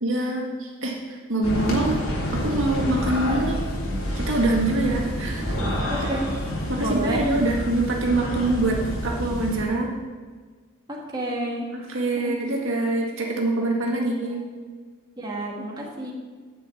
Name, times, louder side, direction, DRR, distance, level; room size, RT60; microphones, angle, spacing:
voice 1, 0.0-2.0 2.3-3.6 4.2-5.5 6.0-6.2 6.7-9.9 11.9-14.4, right 2 dB, 65° right, -1 dB, 1.9 m, -25 dB
sound 1, 1.4-9.6, equal, 75° left, 3.3 m, -28 dB
voice 2, 5.9-6.3 6.8-7.2 10.9-11.7 12.2-12.4 12.6-12.8 13.9-14.0 15.2-16.1, right 1 dB, 20° right, -3 dB, 1.9 m, -30 dB
9.8 x 5.9 x 8.3 m, 1.5 s
head